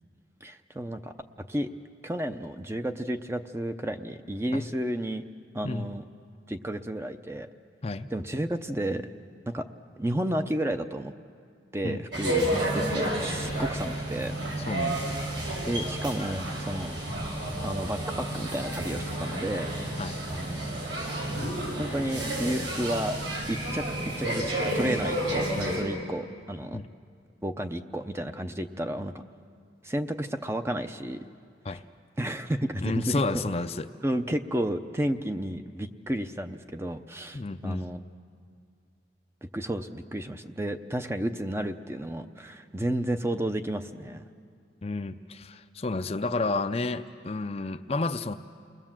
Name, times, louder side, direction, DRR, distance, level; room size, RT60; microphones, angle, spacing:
voice 1, 0.4-1.1 1.5-1.7 2.0-5.2 5.5-6.0 6.5-7.5 8.1-9.1 9.5-9.6 10.0-11.1 11.7-14.3 14.8-15.0 15.6-16.9 17.6-19.7 20.3-20.8 21.8-23.2 23.5-23.8 24.2-26.8 27.4-29.1 29.8-31.2 31.7-31.8 32.2-33.5 34.0-38.0 39.5-44.2, right 1 dB, 15° right, 8 dB, 0.6 m, -32 dB
sound 1, 12.1-25.8, right 1 dB, 75° right, 7.0 m, -31 dB
voice 2, 14.7-15.2 20.0-20.2 26.7-26.8 31.6-31.8 32.8-33.9 37.3-37.8 44.8-48.3, left 3 dB, 35° left, 9 dB, 0.5 m, -31 dB
29.0 x 20.5 x 7.5 m, 2.2 s
head